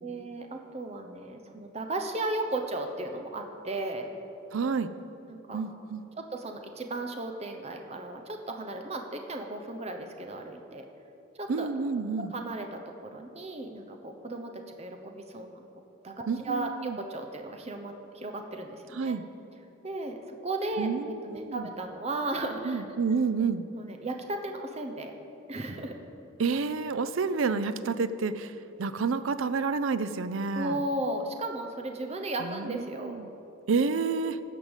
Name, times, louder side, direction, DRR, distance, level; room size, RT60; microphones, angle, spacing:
voice 1, 0.0-4.1 5.3-5.6 6.2-10.8 11.3-11.7 12.3-15.6 16.0-16.1 16.4-19.2 19.8-20.2 20.4-22.8 23.7-25.1 25.5-26.0 30.5-33.2, right 2 dB, 30° right, 4 dB, 0.8 m, -35 dB
voice 2, 4.5-4.9 5.5-6.0 11.5-12.3 16.3-17.0 18.9-19.2 20.8-21.7 22.6-23.7 26.4-30.8 32.4-33.3 33.7-34.4, right 4 dB, 75° right, 13 dB, 0.5 m, -29 dB
13.5 x 5.3 x 8.1 m, 2.9 s
head